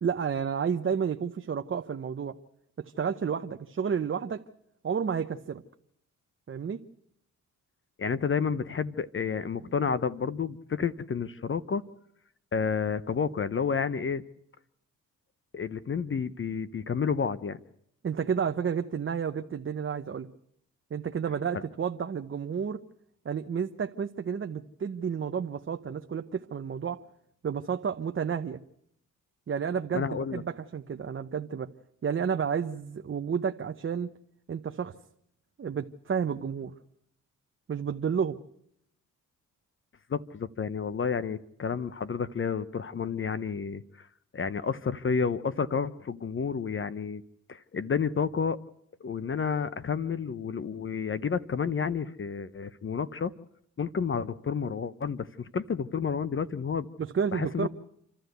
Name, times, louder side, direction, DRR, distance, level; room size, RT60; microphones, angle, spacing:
voice 1, 0.0-2.4 2.8-4.4 4.8-5.6 6.5-6.8 18.0-20.3 20.9-22.8 23.2-27.0 27.4-28.6 29.5-31.7 32.0-34.1 34.5-34.9 35.6-36.7 37.7-38.4 57.0-57.7, right 7 dB, 40° right, 7 dB, 0.9 m, -31 dB
voice 2, 8.0-11.8 12.5-14.2 15.5-17.6 29.9-30.4 40.1-44.1 44.3-47.2 47.5-48.6 49.0-53.3 53.8-56.9 57.3-57.7, left 6 dB, 40° left, 14 dB, 0.8 m, -30 dB
28.0 x 13.0 x 8.0 m, 0.72 s
cardioid pair, 80°, 32 cm